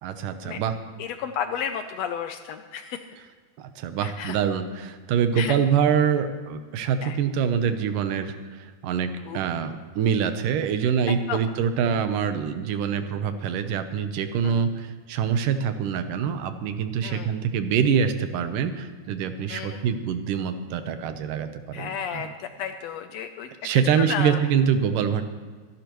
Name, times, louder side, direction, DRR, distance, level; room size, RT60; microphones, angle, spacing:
voice 1, 0.0-0.7 3.6-9.1 9.3-22.3 23.6-25.2, right 7 dB, 90° right, 9 dB, 2.5 m, -25 dB
voice 2, 1.0-3.0 4.0-4.4 5.4-5.6 7.0-7.2 9.2-9.4 11.1-11.4 14.4-14.6 17.0-17.3 19.5-19.8 21.7-24.4, left 8 dB, 80° left, 8 dB, 1.5 m, -33 dB
25.5 x 12.0 x 3.1 m, 1.5 s
omnidirectional pair, 3.7 m